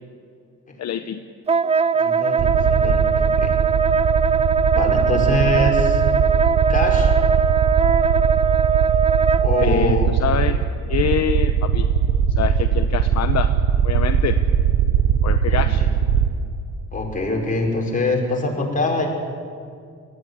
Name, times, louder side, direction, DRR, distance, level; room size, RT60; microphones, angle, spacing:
voice 1, 0.8-1.2 9.6-11.9 12.3-13.6 13.8-14.4 15.2-15.8, left 9 dB, 60° left, 8 dB, 1.0 m, -25 dB
Wind instrument woodwind instrument, 1.5-9.7, right 5 dB, 20° right, 0.5 m, -20 dB
voice 2, 1.9-3.6 4.7-6.0 6.7-7.1 9.4-10.1 15.5-15.9 16.9-19.1, left 2 dB, 25° left, -1 dB, 5.7 m, -24 dB
sound 1, 2.4-16.3, right 8 dB, 75° right, 1.1 m, -20 dB
20.5 x 15.5 x 9.8 m, 2.3 s
cardioid pair, 90°, 30 cm